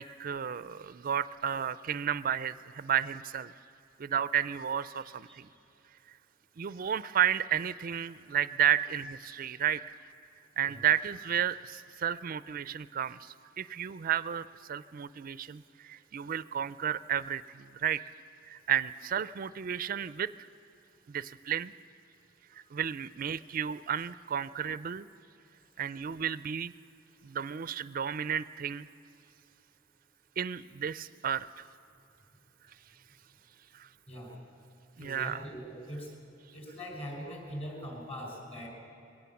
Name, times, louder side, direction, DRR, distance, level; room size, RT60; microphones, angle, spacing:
voice 1, 0.0-3.5 4.0-5.5 6.6-9.8 10.6-18.0 18.4-20.3 21.1-21.7 22.7-25.1 25.8-26.7 27.2-28.9 30.4-31.6 33.7-33.9 35.0-35.4, right 9 dB, 50° right, 16 dB, 0.4 m, -32 dB
voice 2, 5.0-5.4 10.7-10.8 34.1-34.4 35.0-36.1 36.5-38.7, equal, 35° left, 1 dB, 5.1 m, -42 dB
21.5 x 17.5 x 7.1 m, 2.8 s
head